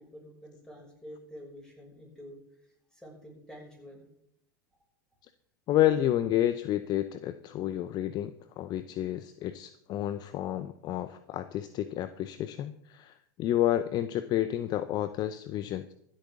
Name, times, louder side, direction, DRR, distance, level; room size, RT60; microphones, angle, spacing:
voice 1, 0.0-4.1, equal, 5° left, -2 dB, 6.2 m, -49 dB
voice 2, 5.7-15.9, left 12 dB, 35° left, 13 dB, 0.6 m, -30 dB
24.5 x 8.3 x 3.7 m, 0.75 s
figure-of-eight pair, 85°, 11 cm